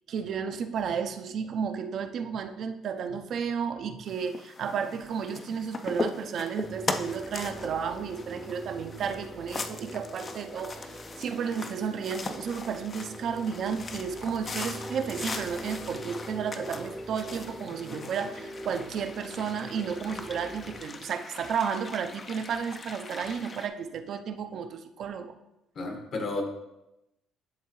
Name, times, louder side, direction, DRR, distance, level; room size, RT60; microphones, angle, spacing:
voice 1, 0.1-25.4, right 6 dB, 60° right, 8 dB, 0.5 m, -33 dB
sound 1, 4.1-23.7, left 3 dB, 35° left, 0.5 m, -40 dB
sound 2, 6.6-20.8, right 1 dB, 10° right, 0.7 m, -43 dB
voice 2, 25.7-26.4, left 2 dB, 55° left, 3 dB, 1.3 m, -32 dB
10.5 x 3.6 x 3.0 m, 0.91 s
cardioid pair, 95°, 0 cm